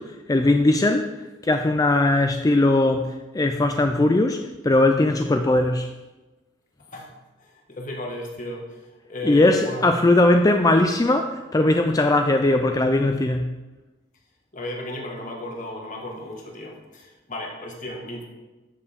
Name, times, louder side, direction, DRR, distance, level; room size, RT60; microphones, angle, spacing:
voice 1, 0.0-5.9 9.2-13.6, left 2 dB, 20° left, 6 dB, 0.4 m, -20 dB
voice 2, 7.4-9.9 14.5-18.2, left 1 dB, 40° left, 0 dB, 1.7 m, -34 dB
12.0 x 7.1 x 3.6 m, 1.1 s
head